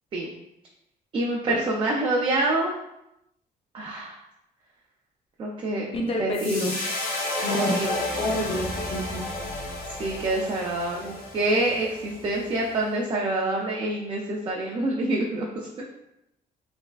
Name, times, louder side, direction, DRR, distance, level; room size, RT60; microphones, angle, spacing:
voice 1, 1.1-2.7 3.7-4.2 5.4-5.9 6.2-6.7 7.4-8.0 10.0-15.8, right 2 dB, 30° right, -2 dB, 0.4 m, -26 dB
voice 2, 5.9-6.8 7.4-7.9 8.2-9.3, left 1 dB, 35° left, 1 dB, 0.6 m, -28 dB
sound 1, 6.3-12.7, left 1 dB, 90° left, 1.3 m, -32 dB
3.4 x 3.1 x 2.3 m, 0.84 s
cardioid pair, 150°, 16 cm